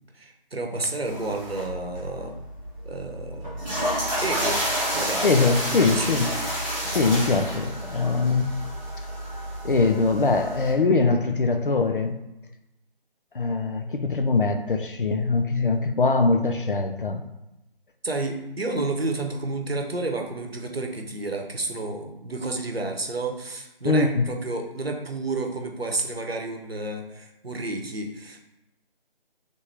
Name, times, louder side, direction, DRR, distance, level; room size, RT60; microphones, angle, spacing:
voice 1, 0.1-2.3 2.8-3.7 4.2-5.4 5.7-6.1 18.0-28.4, right 2 dB, 85° right, 3 dB, 0.8 m, -31 dB
sound 1, 1.0-10.7, equal, ahead, 1.1 m, -30 dB
voice 2, 5.2-6.3 6.8-8.6 9.6-12.2 13.3-17.3 23.8-24.2, left 3 dB, 60° left, 6 dB, 0.5 m, -22 dB
4.1 x 3.4 x 3.4 m, 0.89 s
figure-of-eight pair, 155°, 30 cm